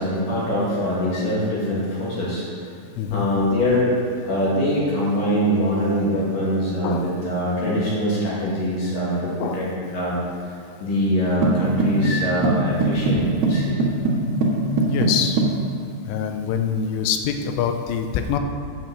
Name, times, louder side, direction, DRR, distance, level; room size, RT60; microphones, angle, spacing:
voice 1, 0.0-2.4 3.1-3.9 4.2-10.5 10.8-13.8, equal, 50° left, -7 dB, 3.7 m, -23 dB
voice 2, 3.0-3.3 6.8-7.1 9.4-9.6 11.6-11.7 14.9-15.4 16.1-18.4, left 7 dB, 85° left, 6 dB, 3.3 m, -25 dB
sound 1, 11.4-15.6, right 2 dB, 65° right, 3.0 m, -22 dB
9.1 x 7.5 x 7.8 m, 2.3 s
omnidirectional pair, 5.6 m